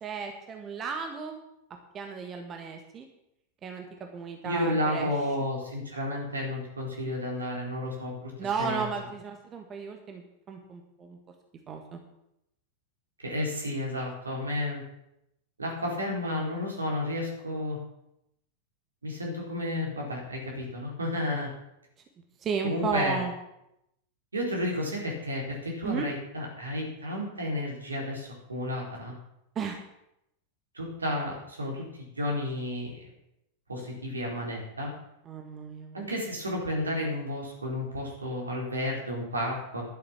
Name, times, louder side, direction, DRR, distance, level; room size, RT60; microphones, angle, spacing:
voice 1, 0.0-1.4 1.9-3.1 3.6-3.8 4.1-5.1 8.4-11.2 11.7-12.0 22.4-23.3 25.8-26.1 29.5-29.8 35.2-36.1, right 5 dB, 25° right, 4 dB, 1.6 m, -34 dB
voice 2, 4.4-8.3 8.6-8.9 13.2-14.8 15.6-17.8 19.0-21.5 22.6-23.2 24.3-29.1 30.7-33.1 33.7-34.9 35.9-39.8, left 1 dB, 80° right, -1 dB, 4.2 m, -32 dB
11.5 x 7.8 x 7.3 m, 0.83 s
figure-of-eight pair, 90°, 0 cm